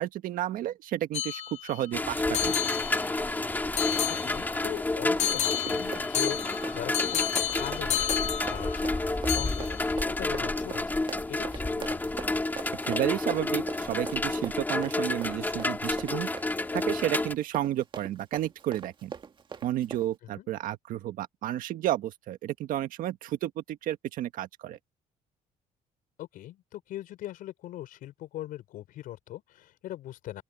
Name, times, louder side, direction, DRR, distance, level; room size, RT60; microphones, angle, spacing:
voice 1, 0.0-2.6 12.8-16.3 16.7-19.1 19.6-24.8, right 13 dB, 75° right, 1.6 m, -32 dB
sound 1, 1.1-1.9 2.3-3.4 3.8-4.7 5.2-9.0 9.3-9.9, left 11 dB, 55° left, 0.8 m, -31 dB
sound 2, 1.9-17.3, left 2 dB, 15° left, 2.4 m, -30 dB
voice 2, 4.1-11.0 11.3-12.0 20.4-20.5 26.2-30.4, left 14 dB, 80° left, 5.6 m, -41 dB
Run, 4.8-20.1, right 6 dB, 35° right, 1.8 m, -42 dB
open air
cardioid pair, 130°, 14 cm